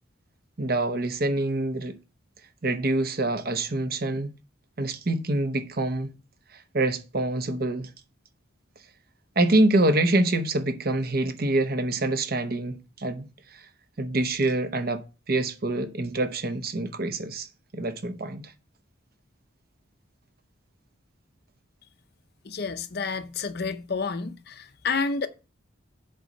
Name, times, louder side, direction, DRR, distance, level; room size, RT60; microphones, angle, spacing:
voice 1, 0.6-1.9 2.6-4.3 4.8-6.1 6.7-7.9 9.4-13.6 14.0-17.5 17.7-18.5, right 2 dB, 45° right, 0.8 m, -26 dB
voice 2, 22.5-25.3, left 4 dB, 50° left, 0.6 m, -30 dB
7.8 x 4.1 x 6.5 m
head